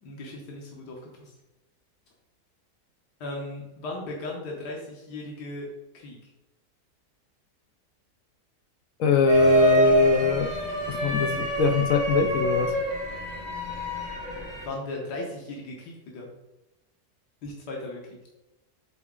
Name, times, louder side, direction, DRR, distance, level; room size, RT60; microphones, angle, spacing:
voice 1, 0.0-1.3 3.2-5.7 5.9-6.2 14.6-16.3 17.4-18.0, left 2 dB, 90° left, -2 dB, 1.7 m, -37 dB
voice 2, 9.0-10.5 10.9-12.7, left 3 dB, 65° left, 6 dB, 0.9 m, -22 dB
sound 1, 9.3-14.7, equal, 25° right, 2.3 m, -26 dB
8.2 x 4.0 x 3.7 m, 0.99 s
omnidirectional pair, 1.7 m